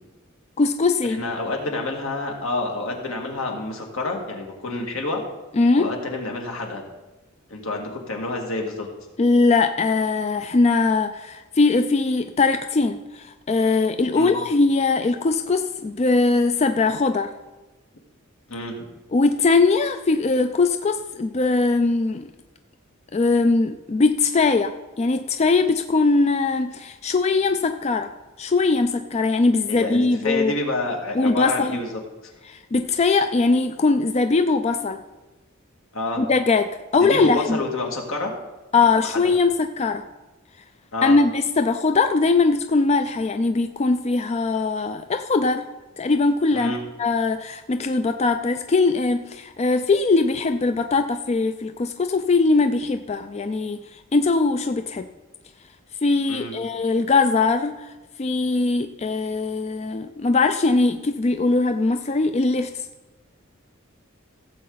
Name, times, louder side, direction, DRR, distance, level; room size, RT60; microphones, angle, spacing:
voice 1, 0.6-1.2 5.6-5.9 9.2-17.3 19.1-22.3 23.1-28.1 28.4-30.6 31.1-31.8 32.5-35.0 36.2-37.6 38.7-40.0 41.0-45.7 46.0-46.7 47.0-53.8 54.1-55.0 56.0-57.8 58.2-62.9, left 3 dB, 30° left, 8 dB, 0.4 m, -21 dB
voice 2, 1.1-5.2 5.8-6.8 7.5-8.9 14.1-14.3 18.5-18.7 29.7-32.3 35.9-36.2 36.9-38.3 38.8-39.3 40.9-41.2 46.5-46.8 56.3-56.5, left 2 dB, 80° left, 1 dB, 2.1 m, -28 dB
16.0 x 7.5 x 4.0 m, 1.1 s
head